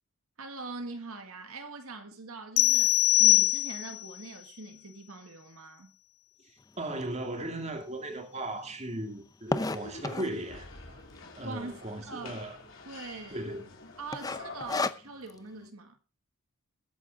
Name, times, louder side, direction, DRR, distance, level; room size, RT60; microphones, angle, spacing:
voice 1, 0.4-5.9 11.4-12.3 12.8-13.5 14.0-16.0, right 3 dB, 75° right, 1.8 m, -43 dB
sound 1, 2.6-4.1, left 17 dB, 80° left, 0.6 m, -22 dB
voice 2, 6.8-11.0 11.4-12.6 13.3-13.6, right 1 dB, 30° right, 2.3 m, -37 dB
sound 2, 7.0-7.1 7.7-7.8 8.0-8.1 8.3-10.5 11.1-11.5 11.8-11.9 12.1-12.3 12.8-13.2 13.4-13.7 14.1-15.4, left 3 dB, 15° left, 0.6 m, -32 dB
sound 3, 9.5-14.8, left 3 dB, 60° left, 3.7 m, -48 dB
21.5 x 9.2 x 2.5 m
head